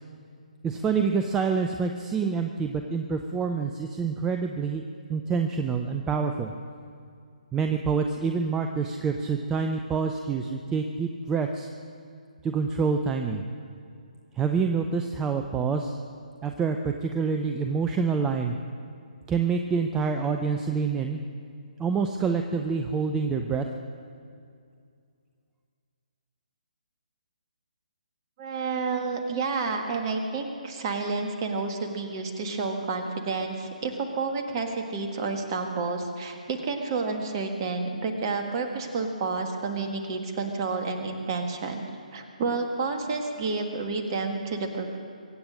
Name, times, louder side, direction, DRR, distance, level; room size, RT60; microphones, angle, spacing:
voice 1, 0.6-4.8 5.1-6.5 7.5-11.7 12.4-13.4 14.3-16.0 16.4-18.6 19.3-21.2 21.8-23.7, right 5 dB, 10° right, 5 dB, 0.5 m, -27 dB
voice 2, 28.4-41.8 42.1-45.0, right 4 dB, 30° right, 4 dB, 1.7 m, -30 dB
23.5 x 8.8 x 6.4 m, 2.3 s
figure-of-eight pair, 140°, 4 cm